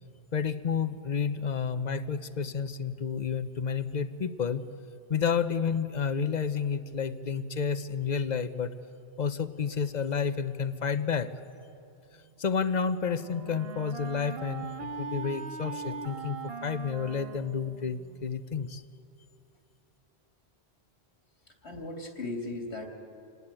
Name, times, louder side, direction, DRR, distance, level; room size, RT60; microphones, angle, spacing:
voice 1, 0.3-4.7 5.1-8.7 9.2-11.3 12.4-18.8, left 6 dB, 45° left, 12 dB, 1.0 m, -30 dB
Wind instrument woodwind instrument, 12.5-18.3, right 4 dB, 65° right, 1.3 m, -40 dB
voice 2, 21.5-22.9, left 2 dB, 90° left, 2 dB, 3.0 m, -37 dB
27.5 x 19.5 x 8.9 m, 2.7 s
omnidirectional pair, 1.1 m